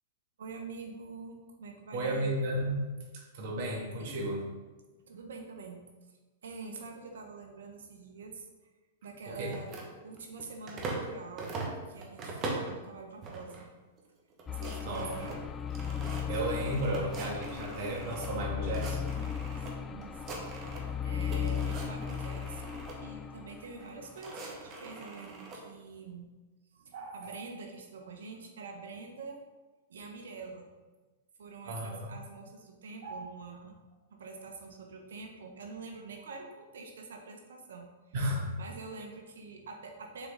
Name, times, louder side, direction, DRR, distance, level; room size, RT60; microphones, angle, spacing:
voice 1, 0.4-2.3 4.0-4.1 5.1-6.2 6.4-8.5 9.0-9.7 10.0-11.6 11.9-13.7 14.5-15.4 19.6-26.3 26.7-29.4 29.9-30.7 31.4-33.8 34.1-37.9 38.6-40.3, right 4 dB, 85° right, 2 dB, 1.1 m, -46 dB
voice 2, 1.9-2.8 3.1-4.4 9.4-9.5 14.8-15.1 16.3-19.1 26.9-27.3 31.7-32.1 33.0-33.2 38.1-38.5, right 1 dB, 55° right, -1 dB, 1.9 m, -34 dB
sound 1, 9.4-11.1 11.4-12.8 13.2-13.7 14.0-14.1 14.3-18.3 18.6-19.7 20.0-20.9 21.2-23.0 23.8-25.6, right 3 dB, 30° right, 1.2 m, -42 dB
sound 2, 14.5-24.1, left 7 dB, 20° left, 0.3 m, -36 dB
6.6 x 3.9 x 3.8 m, 1.2 s
hypercardioid pair, 130°, 0 cm